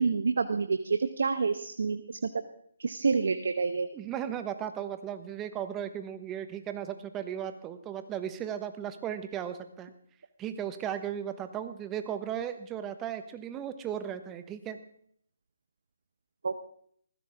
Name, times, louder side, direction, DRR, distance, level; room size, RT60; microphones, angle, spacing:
voice 1, 0.0-2.2 2.8-3.9 16.4-16.6, right 4 dB, 65° right, 9 dB, 1.0 m, -28 dB
voice 2, 3.9-9.9 10.4-14.8, right 9 dB, 15° right, 9 dB, 1.2 m, -36 dB
20.0 x 15.5 x 3.6 m, 0.64 s
figure-of-eight pair, 145°, 0 cm